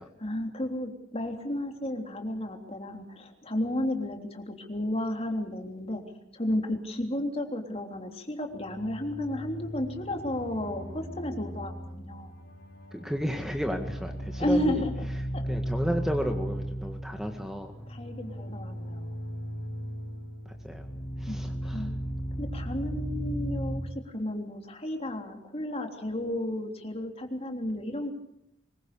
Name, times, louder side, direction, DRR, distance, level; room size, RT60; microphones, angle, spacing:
voice 1, 0.2-6.0 6.3-12.4 14.4-14.9 15.3-15.6 17.9-19.2 21.3-21.5 21.7-21.9 22.4-28.1, left 1 dB, 35° left, 3 dB, 3.4 m, -33 dB
sound 1, 8.5-23.8, equal, 55° left, 5.4 m, -36 dB
voice 2, 12.9-14.8 15.2-17.8 20.5-20.9 21.2-21.9, equal, 5° right, 4 dB, 1.8 m, -33 dB
25.0 x 22.0 x 6.9 m, 0.78 s
head